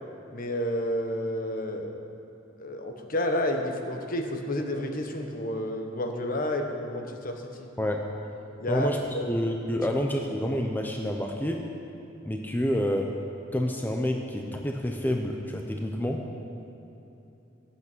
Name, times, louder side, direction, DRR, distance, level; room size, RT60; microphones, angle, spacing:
voice 1, 0.3-2.0 2.6-7.7 8.6-8.9 9.1-9.3 9.8-9.9, left 1 dB, 45° left, 4 dB, 1.1 m, -30 dB
voice 2, 8.7-9.0 9.3-11.6 12.2-13.1 13.5-16.2, equal, 10° left, 2 dB, 0.7 m, -28 dB
16.5 x 8.3 x 6.2 m, 2.9 s
head